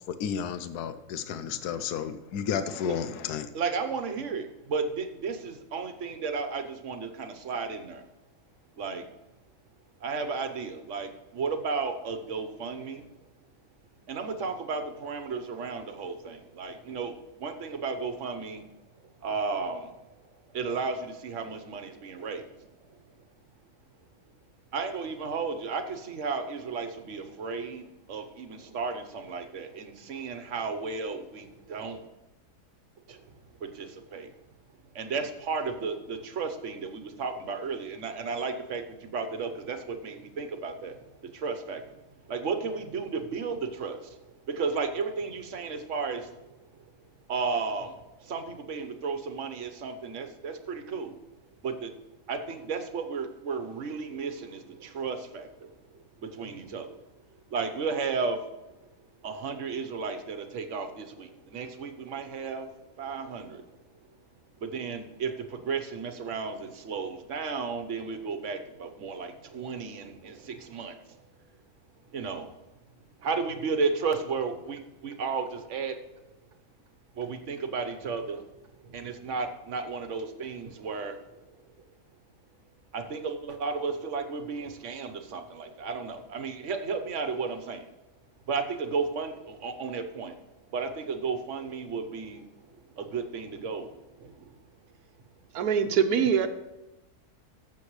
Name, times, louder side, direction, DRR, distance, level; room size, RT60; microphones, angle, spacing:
voice 1, 0.1-3.5, left 8 dB, 85° left, 11 dB, 1.2 m, -32 dB
voice 2, 3.5-8.0 8.8-9.0 10.0-13.1 14.1-18.6 19.2-19.9 20.5-22.5 24.7-32.0 33.1-33.2 33.6-34.3 34.9-41.0 41.3-41.8 42.3-44.1 44.5-46.3 47.3-51.1 51.6-51.9 52.3-55.5 56.2-56.9 57.5-58.4 59.2-62.7 63.0-63.6 64.6-70.9 72.1-72.5 73.2-75.9 77.2-78.4 78.9-81.2 82.9-87.9 88.5-90.3 90.7-92.4 93.0-93.9 94.2-94.3, right 4 dB, 55° right, 7 dB, 1.3 m, -33 dB
voice 3, 95.5-96.5, right 7 dB, 75° right, 9 dB, 1.3 m, -23 dB
14.5 x 7.0 x 3.2 m, 1.0 s
omnidirectional pair, 1.6 m